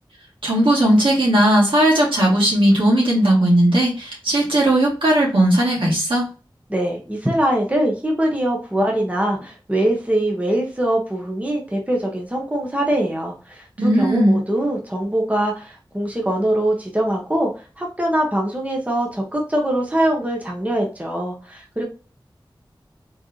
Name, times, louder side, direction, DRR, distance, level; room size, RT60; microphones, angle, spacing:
voice 1, 0.4-6.3 13.8-14.4, right 1 dB, 85° right, -4 dB, 2.0 m, -17 dB
voice 2, 6.7-17.5 17.8-21.8, right 1 dB, 15° right, 0 dB, 1.0 m, -22 dB
3.7 x 3.4 x 2.8 m, 0.34 s
wide cardioid pair, 55°, 8 cm